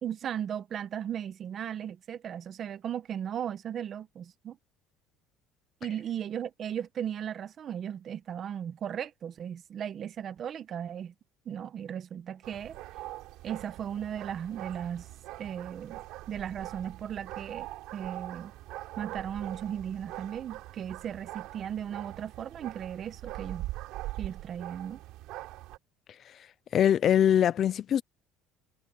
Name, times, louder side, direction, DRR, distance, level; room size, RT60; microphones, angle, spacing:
voice 1, 0.0-4.6 5.8-11.1 11.5-12.8 13.4-15.1 15.4-16.0 16.3-17.7 17.9-18.5 19.0-23.7 24.2-25.0, right 9 dB, 40° right, 1.1 m, -36 dB
sound 1, 12.4-25.8, right 17 dB, 70° right, 4.4 m, -42 dB
voice 2, 26.7-28.0, left 10 dB, 40° left, 0.5 m, -22 dB
cardioid pair, 145°, 0 cm